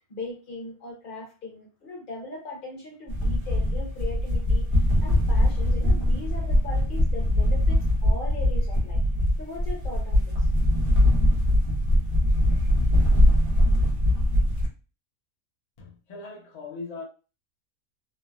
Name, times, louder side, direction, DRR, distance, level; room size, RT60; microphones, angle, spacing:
voice 1, 0.1-9.0 9.4-10.5, left 2 dB, 40° left, 0.9 m, -39 dB
sound 1, 3.1-14.7, left 1 dB, 45° right, 1.0 m, -22 dB
voice 2, 15.8-17.0, left 3 dB, 65° left, 0.4 m, -39 dB
3.2 x 2.1 x 2.2 m
omnidirectional pair, 1.5 m